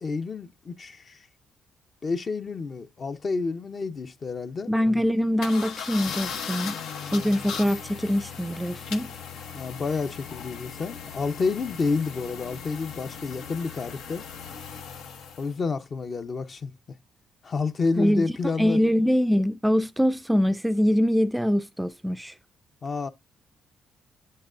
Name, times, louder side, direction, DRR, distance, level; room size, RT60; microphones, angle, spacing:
voice 1, 0.0-1.2 2.0-4.7 9.5-14.2 15.4-16.7 17.4-18.8 22.8-23.1, left 4 dB, 45° left, 0.7 m, -29 dB
voice 2, 4.7-6.7 7.1-9.1 18.0-18.3 18.6-22.3, equal, 5° right, 0.4 m, -23 dB
sound 1, 5.4-15.5, left 6 dB, 85° left, 0.8 m, -38 dB
7.7 x 6.4 x 2.5 m
cardioid pair, 90°, 0 cm